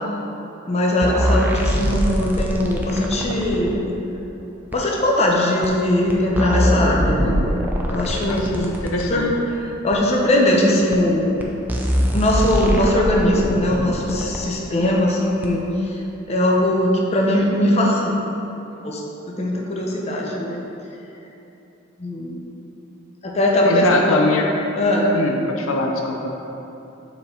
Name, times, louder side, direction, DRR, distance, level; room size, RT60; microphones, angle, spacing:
voice 1, 0.7-3.8 4.7-7.4 7.9-8.6 9.1-11.5 12.1-16.0 16.3-18.4 18.8-20.6 22.0-22.4 23.2-24.2 24.8-25.1, left 1 dB, 30° left, -2 dB, 0.7 m, -20 dB
sound 1, 1.0-3.7 4.7-4.8 5.6-5.7 6.1-9.1 9.9-10.0 10.9-11.0 11.4-11.5 11.7-14.4 15.4-15.5, equal, 10° right, 0.5 m, -22 dB
voice 2, 8.3-9.3 23.6-24.5 25.1-26.3, left 2 dB, 85° left, 1 dB, 0.6 m, -22 dB
7.0 x 4.4 x 3.7 m, 3.0 s
head